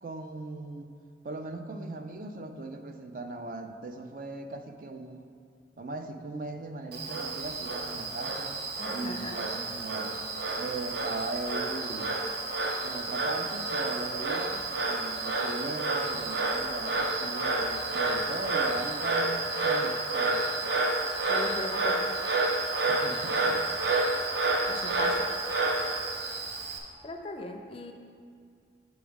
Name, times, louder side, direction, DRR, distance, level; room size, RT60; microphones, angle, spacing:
voice 1, 0.0-0.9 1.2-5.3 5.8-8.6 8.9-10.3 10.6-12.2 12.8-20.4 22.9-23.6, right 2 dB, 50° right, 7 dB, 0.4 m, -39 dB
Frog, 6.9-26.8, right 2 dB, 65° right, 0.8 m, -30 dB
voice 2, 8.8-9.5 21.3-22.1 24.6-25.3 27.0-27.9, left 2 dB, 30° left, 5 dB, 0.4 m, -38 dB
7.0 x 4.8 x 5.1 m, 2.3 s
head